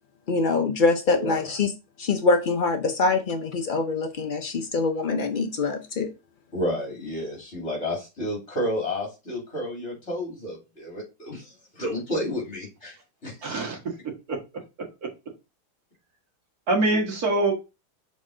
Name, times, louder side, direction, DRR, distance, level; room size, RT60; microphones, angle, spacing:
voice 1, 0.3-1.7 2.0-6.1, left 3 dB, 90° left, 0.4 m, -24 dB
voice 2, 6.5-13.0 13.2-13.3, left 1 dB, 40° left, 3.1 m, -31 dB
voice 3, 13.4-13.8 14.0-14.4 15.0-15.1 16.7-17.5, right 2 dB, 60° right, 1.9 m, -24 dB
6.3 x 4.1 x 3.7 m
omnidirectional pair, 1.8 m